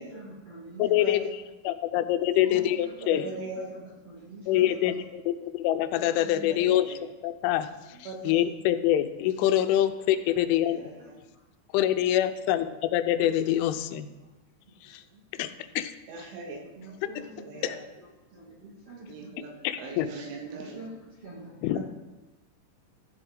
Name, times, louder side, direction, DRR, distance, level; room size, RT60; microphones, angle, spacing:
voice 1, 0.0-1.1 2.4-3.4 3.7-4.8 6.1-6.5 7.9-8.2 10.0-10.2 13.2-13.6 14.9-15.5 16.7-17.7 18.0-19.3 20.4-21.9, right 2 dB, 50° right, -5 dB, 1.7 m, -46 dB
voice 2, 0.8-3.3 4.5-10.8 11.7-14.1 14.8-15.0 15.4-15.5 15.8-16.3 17.2-17.3 17.6-17.8 19.6-20.1 21.6-21.9, left 12 dB, 85° left, 10 dB, 3.0 m, -26 dB
voice 3, 3.0-3.7 6.5-7.0 8.1-8.3 10.6-10.9 16.1-16.6 16.9-17.0 17.4-17.8 19.1-20.8 21.8-21.9, right 3 dB, 90° right, 2 dB, 3.9 m, -40 dB
13.5 x 7.8 x 3.8 m, 1.1 s
omnidirectional pair, 5.5 m